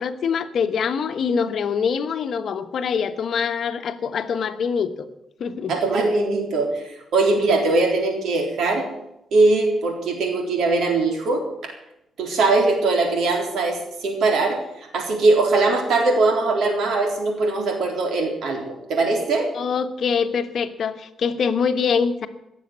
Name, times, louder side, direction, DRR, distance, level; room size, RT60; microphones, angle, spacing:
voice 1, 0.0-4.9 5.4-5.7 19.5-22.3, left 6 dB, 60° left, 9 dB, 1.1 m, -24 dB
voice 2, 5.7-8.9 9.3-11.4 12.2-14.6 14.9-18.6 18.9-19.5, right 3 dB, 80° right, 2 dB, 3.9 m, -21 dB
16.5 x 7.2 x 9.3 m, 0.84 s
cardioid pair, 120°, 0 cm